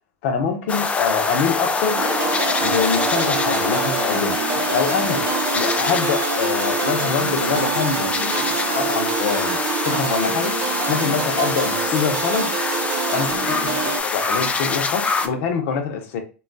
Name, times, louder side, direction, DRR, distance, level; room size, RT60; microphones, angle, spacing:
voice 1, 0.2-2.0 2.6-4.4 4.7-5.2 5.5-8.4 8.7-9.6 9.8-10.5 10.9-12.5 13.1-16.2, left 6 dB, 65° left, 0.8 m, -24 dB
sound 1, 0.7-15.3, left 4 dB, 15° left, 0.3 m, -24 dB
sound 2, 1.9-14.0, right 6 dB, 55° right, 0.7 m, -26 dB
2.9 x 2.3 x 2.5 m
hypercardioid pair, 105°, 8 cm